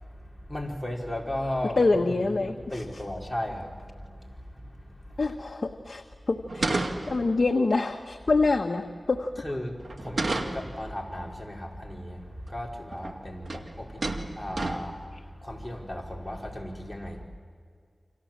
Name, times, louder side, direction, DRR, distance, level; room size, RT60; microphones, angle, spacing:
voice 1, 0.0-5.4 6.9-7.2 9.4-17.2, left 1 dB, 5° left, -2 dB, 4.8 m, -36 dB
voice 2, 1.8-2.8 5.2-6.7 7.1-9.3, left 3 dB, 60° left, 4 dB, 1.3 m, -26 dB
sound 1, 6.5-7.5 9.8-10.8 12.5-12.6 12.9-13.2 13.5-13.7 14.0-15.0, right 2 dB, 65° right, 2.1 m, -31 dB
29.5 x 26.0 x 7.5 m, 2.1 s
wide cardioid pair, 80°, 0 cm